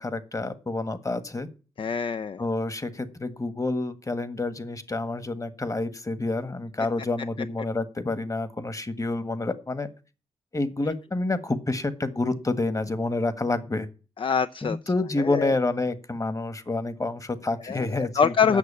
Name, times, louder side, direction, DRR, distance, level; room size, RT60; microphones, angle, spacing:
voice 1, 0.0-1.5 2.4-9.9 10.5-13.9 14.6-18.6, left 2 dB, 30° left, 1.5 m, -28 dB
voice 2, 1.8-2.4 14.2-14.8 15.2-15.5 17.6-18.6, left 6 dB, 50° left, 0.5 m, -25 dB
8.3 x 6.5 x 8.3 m
cardioid pair, 50°, 11 cm